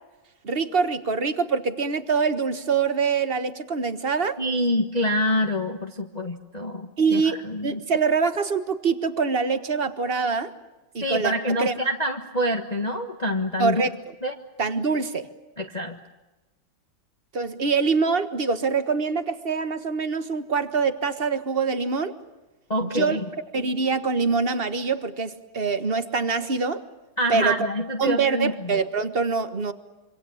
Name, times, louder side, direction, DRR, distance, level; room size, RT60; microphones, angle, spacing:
voice 1, 0.4-4.4 7.0-10.5 10.9-11.3 11.6-11.7 13.6-13.9 14.6-15.3 17.3-22.1 22.8-23.2 23.5-26.8 27.3-27.7 28.0-29.7, right 5 dB, 30° right, 10 dB, 1.4 m, -24 dB
voice 2, 4.4-7.8 11.0-13.8 14.2-14.3 15.6-16.0 22.7-23.2 27.2-28.8, equal, 25° left, 3 dB, 1.4 m, -26 dB
26.5 x 25.5 x 7.2 m, 1.1 s
omnidirectional pair, 2.1 m